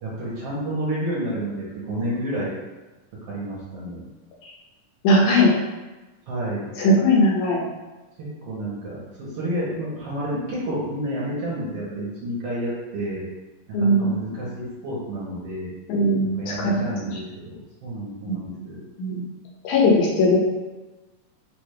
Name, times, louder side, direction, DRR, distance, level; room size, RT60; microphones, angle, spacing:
voice 1, 0.0-2.5 3.2-4.0 6.3-6.7 8.2-13.2 13.8-15.7 16.2-18.8, right 1 dB, 60° right, -7 dB, 1.7 m, -30 dB
voice 2, 5.0-5.5 6.8-7.6 13.7-14.2 15.9-16.9 18.3-18.4 19.0-19.2 19.6-20.4, left 1 dB, 75° left, -3 dB, 2.2 m, -19 dB
5.9 x 2.6 x 3.3 m, 1.1 s
omnidirectional pair, 3.7 m